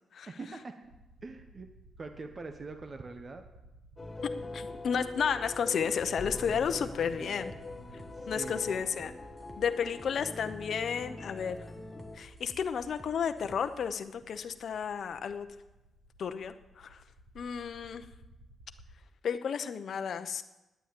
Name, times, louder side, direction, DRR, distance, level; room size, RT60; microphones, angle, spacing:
voice 1, 0.3-0.7 1.2-1.7 2.0-3.4 6.8-7.6 8.1-8.8, right 3 dB, 35° right, 6 dB, 1.0 m, -44 dB
sound 1, 0.8-18.9, right 1 dB, 75° right, 3.8 m, -57 dB
sound 2, 4.0-12.2, left 2 dB, 20° left, 1.7 m, -42 dB
voice 2, 4.5-7.5 8.3-9.1 9.6-11.6 12.1-15.5 16.2-17.0 17.3-18.0 19.2-20.4, left 7 dB, 65° left, 9 dB, 0.8 m, -32 dB
sound 3, 6.0-13.8, right 2 dB, 20° right, 1.4 m, -54 dB
10.0 x 9.2 x 8.6 m, 0.99 s
cardioid pair, 85°, 0 cm